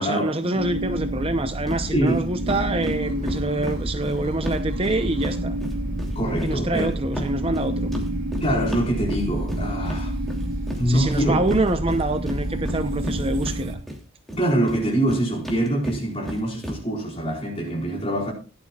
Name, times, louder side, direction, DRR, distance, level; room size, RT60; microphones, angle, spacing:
voice 1, 0.0-5.6 6.4-7.9 10.9-13.8, right 2 dB, 25° right, 0.7 m, -26 dB
sound 1, 0.6-13.7, right 1 dB, 90° right, 2.5 m, -29 dB
sound 2, 1.7-1.8 2.1-2.2 2.5-5.4 5.6-14.0 14.3-16.8, equal, ahead, 2.8 m, -33 dB
voice 2, 6.1-6.9 8.4-10.2 10.8-11.4 14.4-18.3, right 1 dB, 30° left, 4.6 m, -24 dB
17.0 x 11.0 x 2.4 m
head